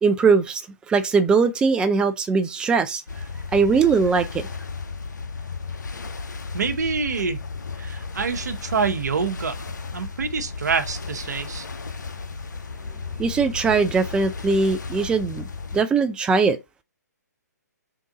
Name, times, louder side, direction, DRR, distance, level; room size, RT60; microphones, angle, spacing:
voice 1, 0.0-0.6 0.9-3.0 3.5-4.4 13.2-15.4 15.7-16.6, right 4 dB, 10° right, 0.3 m, -20 dB
sound 1, 3.1-15.8, left 4 dB, 80° left, 0.6 m, -34 dB
voice 2, 6.5-7.4 7.8-9.5 9.9-11.7, right 5 dB, 70° right, 0.9 m, -26 dB
3.7 x 2.6 x 3.8 m
figure-of-eight pair, 135°, 10 cm